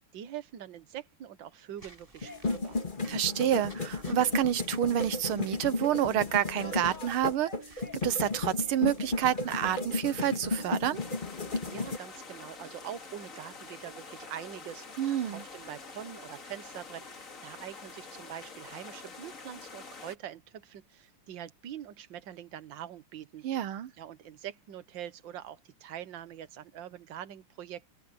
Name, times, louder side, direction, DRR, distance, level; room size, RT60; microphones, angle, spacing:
voice 1, 0.1-2.8 11.6-23.5 23.9-27.9, right 10 dB, 65° right, 1.9 m, -44 dB
Walk footsteps / Squeak, 1.8-9.7, right 1 dB, 25° right, 7.7 m, -57 dB
sound 1, 2.2-12.0, left 3 dB, 25° left, 1.9 m, -34 dB
voice 2, 3.1-7.5 8.0-11.0 15.0-15.4 23.4-23.9, right 11 dB, 85° right, 1.8 m, -28 dB
sound 2, 10.9-20.2, left 4 dB, 40° left, 2.4 m, -47 dB
open air
omnidirectional pair, 2.3 m